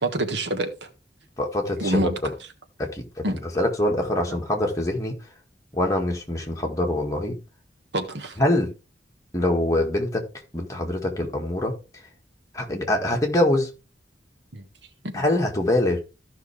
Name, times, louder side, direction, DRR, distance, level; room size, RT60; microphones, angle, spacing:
voice 1, 0.0-0.9 1.8-2.5 3.2-3.4 7.9-8.4 14.5-14.6 15.0-15.2, right 1 dB, 80° right, 1.5 m, -27 dB
voice 2, 1.4-2.3 2.8-3.2 3.6-5.2 5.7-7.4 8.4-8.7 9.3-10.2 10.5-11.7 12.5-13.7 15.1-16.0, left 1 dB, 20° left, 2.0 m, -24 dB
14.5 x 5.8 x 3.5 m
head